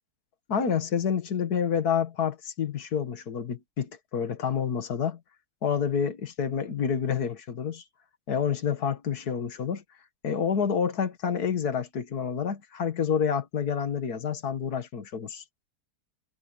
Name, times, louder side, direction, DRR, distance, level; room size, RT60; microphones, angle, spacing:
voice 1, 0.5-5.2 5.6-7.8 8.3-9.8 10.2-15.4, left 7 dB, 70° left, 2.2 m, -28 dB
omnidirectional pair, 1.7 m